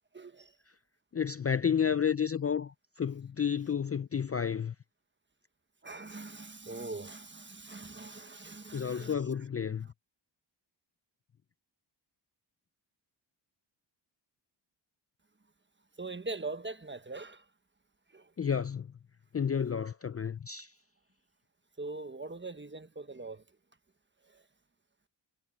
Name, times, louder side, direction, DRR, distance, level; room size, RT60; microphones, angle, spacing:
voice 1, 0.1-0.5 5.8-9.2 16.0-17.4 18.1-18.3 21.8-23.4 24.3-24.4, right 3 dB, 25° right, 1.3 m, -42 dB
voice 2, 1.1-4.7 8.7-9.9 18.4-18.9 19.3-20.7, left 7 dB, 30° left, 0.5 m, -31 dB
cardioid pair, 55°, 47 cm